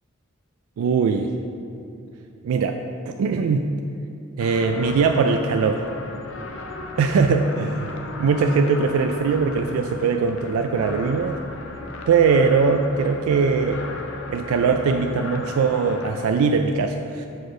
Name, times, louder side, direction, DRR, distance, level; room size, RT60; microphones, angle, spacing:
voice 1, 0.8-1.3 2.4-2.8 3.1-3.6 4.4-5.8 7.0-11.4 12.1-13.8 14.3-17.3, right 5 dB, 90° right, 5 dB, 0.3 m, -21 dB
sound 1, 4.4-16.3, left 2 dB, 65° left, 0.6 m, -36 dB
4.8 x 4.5 x 6.0 m, 2.7 s
head